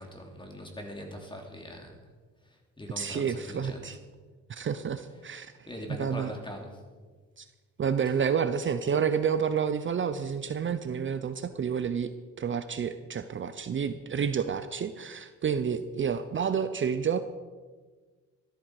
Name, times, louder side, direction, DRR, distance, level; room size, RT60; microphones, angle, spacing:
voice 1, 0.0-2.0 2.5-3.9 5.7-6.8, left 1 dB, 15° left, 2 dB, 3.1 m, -42 dB
voice 2, 3.0-4.0 4.5-5.7 6.0-6.3 7.4-7.5 7.8-12.1 12.4-17.2, right 7 dB, 40° right, 11 dB, 0.7 m, -29 dB
13.5 x 13.0 x 4.8 m, 1.4 s
cardioid pair, 90°, 30 cm